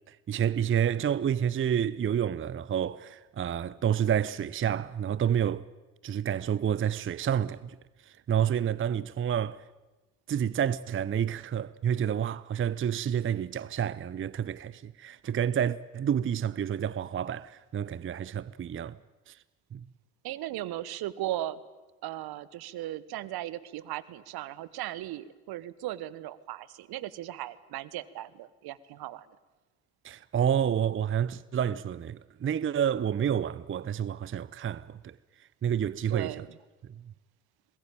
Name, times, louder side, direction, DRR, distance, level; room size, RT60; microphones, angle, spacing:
voice 1, 0.1-5.7 6.0-7.8 8.0-9.6 10.3-19.0 19.3-19.4 19.7-19.8 30.0-35.2 35.6-36.4, right 9 dB, 30° right, 0.7 m, -29 dB
voice 2, 20.2-21.6 22.0-29.3 36.1-36.6, right 14 dB, 60° right, 1.3 m, -37 dB
23.5 x 20.5 x 9.0 m
hypercardioid pair, 50°, 42 cm